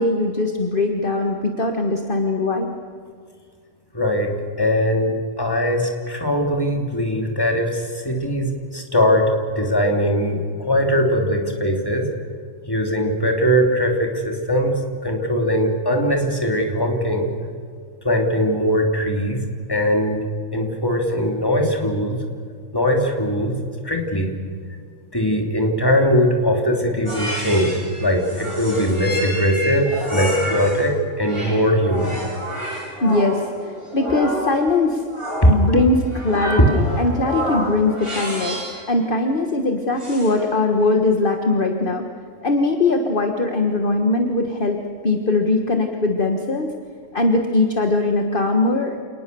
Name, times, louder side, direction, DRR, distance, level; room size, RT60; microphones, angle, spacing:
voice 1, 0.0-2.7 33.0-35.0 35.5-38.6 38.9-42.1 42.4-46.7 47.1-48.9, left 2 dB, 45° left, 4 dB, 1.7 m, -20 dB
voice 2, 3.9-4.3 4.6-9.3 9.5-12.1 12.7-17.3 18.0-19.4 19.7-20.2 20.5-22.2 22.7-23.6 23.8-24.3 25.1-32.2 35.4-35.5 36.6-36.7, equal, 20° left, 2 dB, 3.2 m, -20 dB
sound 1, 27.1-30.9 31.2-38.8 40.0-40.5, equal, 20° right, 8.2 m, -29 dB
27.5 x 19.5 x 6.9 m, 2.1 s
omnidirectional pair, 1.3 m